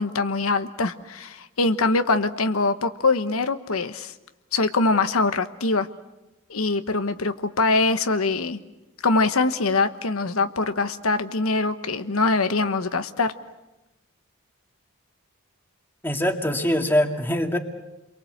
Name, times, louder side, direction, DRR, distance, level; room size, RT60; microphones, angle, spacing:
voice 1, 0.0-4.1 4.5-5.9 6.5-8.6 9.0-13.3, left 3 dB, 85° left, 9 dB, 1.2 m, -23 dB
voice 2, 16.0-17.6, left 1 dB, 10° left, 3 dB, 2.3 m, -23 dB
30.0 x 23.5 x 8.0 m, 1.0 s
head